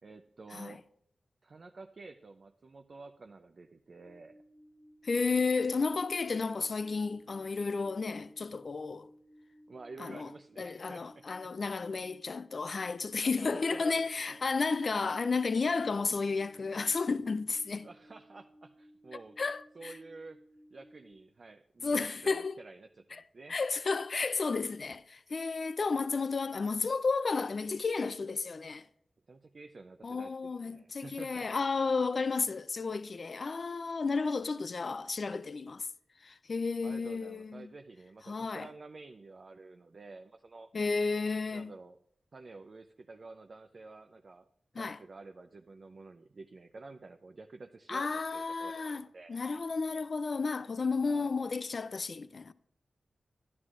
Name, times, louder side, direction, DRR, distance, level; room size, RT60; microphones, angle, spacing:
voice 1, 0.0-0.8 1.4-4.4 9.7-11.3 13.2-14.4 17.8-19.4 19.7-20.4 20.7-23.5 29.3-31.5 36.8-40.7 41.5-42.0 42.3-44.5 44.8-49.4 51.0-51.3, right 3 dB, 50° right, 0.5 m, -50 dB
sound 1, 4.0-21.1, equal, ahead, 0.9 m, -59 dB
voice 2, 5.0-9.1 10.0-10.3 10.6-17.9 19.4-19.9 21.8-22.6 23.1-23.2 23.5-28.8 30.0-35.9 36.2-37.7 38.3-38.7 40.7-41.7 44.8-45.0 47.9-52.5, left 4 dB, 50° left, 0.4 m, -32 dB
11.5 x 11.0 x 2.5 m
wide cardioid pair, 95°, 0 cm